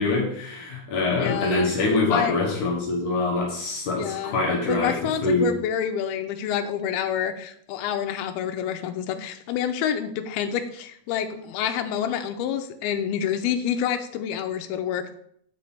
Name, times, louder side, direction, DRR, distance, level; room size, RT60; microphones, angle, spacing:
voice 1, 0.0-5.0 5.2-5.5, left 3 dB, 60° left, -1 dB, 2.5 m, -24 dB
voice 2, 1.2-1.7 2.1-2.4 4.0-4.4 4.7-15.2, left 9 dB, 85° left, 7 dB, 2.5 m, -28 dB
8.4 x 5.3 x 4.4 m, 0.67 s
omnidirectional pair, 4.5 m